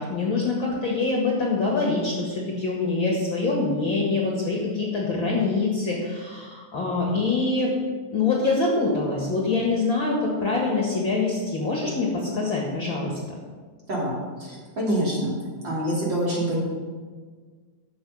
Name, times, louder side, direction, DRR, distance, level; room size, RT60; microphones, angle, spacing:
voice 1, 0.0-7.7 8.1-13.1, left 3 dB, 45° left, -2 dB, 2.1 m, -25 dB
voice 2, 13.9-15.3 15.6-16.6, right 1 dB, 35° right, -5 dB, 3.5 m, -26 dB
12.5 x 7.8 x 5.5 m, 1.5 s
omnidirectional pair, 3.7 m